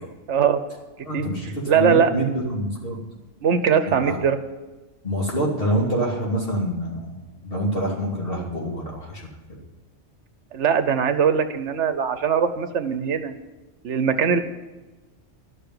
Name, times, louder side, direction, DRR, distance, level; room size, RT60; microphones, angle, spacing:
voice 1, 0.3-0.6 1.1-1.3 1.7-2.1 3.4-4.4 10.5-13.3 13.8-14.4, right 7 dB, 70° right, 10 dB, 1.1 m, -21 dB
voice 2, 1.0-3.0 3.9-4.2 5.0-9.2 9.5-9.6, right 1 dB, 50° left, -3 dB, 2.9 m, -26 dB
12.0 x 6.9 x 9.5 m, 1.2 s
omnidirectional pair, 1.3 m